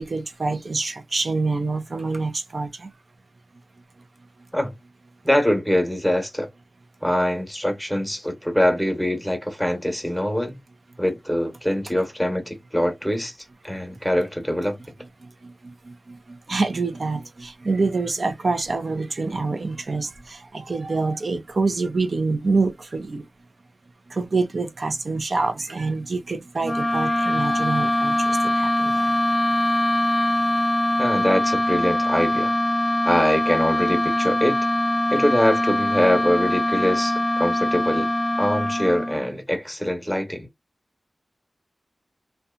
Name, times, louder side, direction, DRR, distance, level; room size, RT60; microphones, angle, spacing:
voice 1, 0.0-2.9 13.7-14.0 15.2-23.3 24.1-29.1, right 3 dB, 60° right, 0.5 m, -26 dB
voice 2, 5.2-6.5 7.0-10.6 11.0-13.3 13.6-14.8 31.0-32.5 33.0-34.6 35.1-38.1 38.4-40.5, equal, ahead, 0.9 m, -23 dB
sound 1, 26.6-39.3, left 1 dB, 30° left, 0.6 m, -22 dB
2.7 x 2.2 x 2.3 m
wide cardioid pair, 75°, 0 cm